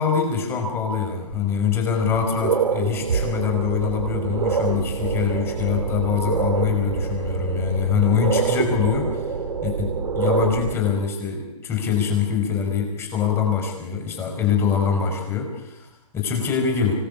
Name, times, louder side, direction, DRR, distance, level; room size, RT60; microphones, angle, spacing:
voice 1, 0.0-9.4 9.6-15.9 16.1-16.9, left 7 dB, 10° left, 3 dB, 4.6 m, -24 dB
sound 1, 1.3-1.4 1.9-10.7, right 6 dB, 70° right, 3.4 m, -26 dB
25.0 x 17.5 x 8.3 m, 0.88 s
hypercardioid pair, 160°, 20 cm